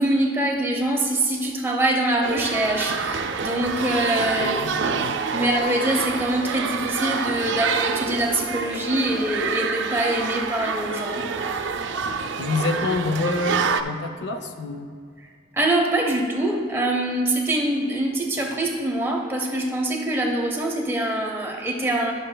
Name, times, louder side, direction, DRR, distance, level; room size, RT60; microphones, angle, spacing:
voice 1, 0.0-4.6 5.3-11.3 15.5-22.1, right 1 dB, 10° right, -1 dB, 0.8 m, -24 dB
sound 1, 2.2-13.8, right 5 dB, 75° right, 0.4 m, -27 dB
voice 2, 4.4-5.5 12.4-14.9, left 3 dB, 65° left, 7 dB, 0.5 m, -27 dB
11.0 x 7.5 x 2.2 m, 2.1 s
head